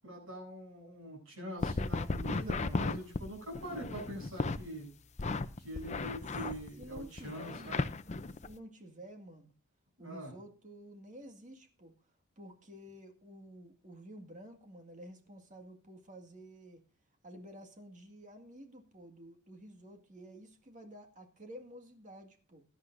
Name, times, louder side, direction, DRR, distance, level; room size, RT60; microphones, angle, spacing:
voice 1, 0.0-4.9 5.6-7.9 10.0-10.3, equal, 65° right, 1 dB, 7.8 m, -44 dB
sound 1, 1.6-4.6 5.2-8.5, left 3 dB, 30° left, 0.6 m, -35 dB
voice 2, 6.8-8.0 8.4-9.5 10.0-11.9 12.4-16.8 17.2-22.6, right 1 dB, 35° right, 4 dB, 1.9 m, -51 dB
17.0 x 11.5 x 2.6 m, 0.37 s
head